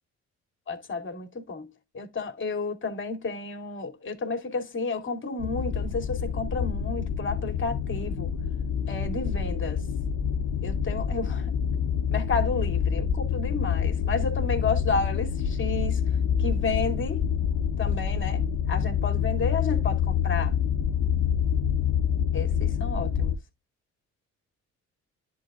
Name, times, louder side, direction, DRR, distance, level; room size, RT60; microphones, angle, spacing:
voice 1, 0.7-1.7 1.9-8.3 8.9-9.8 10.6-11.5 12.1-16.0 16.4-17.2 17.8-20.5 22.3-23.4, left 4 dB, 40° left, 2.5 m, -31 dB
sound 1, 5.4-23.4, left 8 dB, 80° left, 0.9 m, -27 dB
10.5 x 3.8 x 3.7 m
cardioid pair, 90°, 30 cm